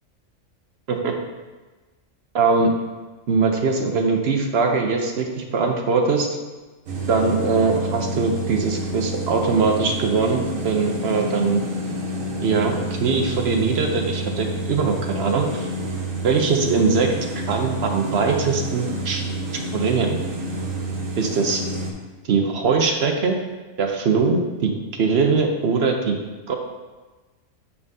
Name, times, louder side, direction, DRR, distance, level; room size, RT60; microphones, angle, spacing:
voice 1, 2.3-2.7 3.3-6.3 7.1-11.6 12.4-15.7 16.2-17.1 17.5-19.2 19.7-20.2 21.2-21.6 22.2-23.4 23.8-26.2 26.5-26.6, right 4 dB, 60° right, 2 dB, 0.9 m, -21 dB
sound 1, 6.9-21.9, right 1 dB, 90° right, 1.4 m, -29 dB
8.0 x 5.5 x 2.7 m, 1.2 s
omnidirectional pair, 1.3 m